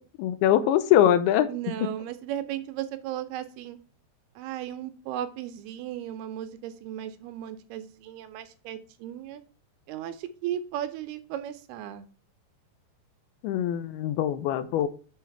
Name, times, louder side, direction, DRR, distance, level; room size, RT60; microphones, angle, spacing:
voice 1, 0.2-1.5 1.8-1.9 13.4-14.9, left 11 dB, 80° left, 12 dB, 2.5 m, -22 dB
voice 2, 1.5-3.8 4.4-9.4 9.9-12.1, right 11 dB, 80° right, 10 dB, 2.5 m, -36 dB
7.1 x 4.9 x 4.5 m, 0.38 s
omnidirectional pair, 4.8 m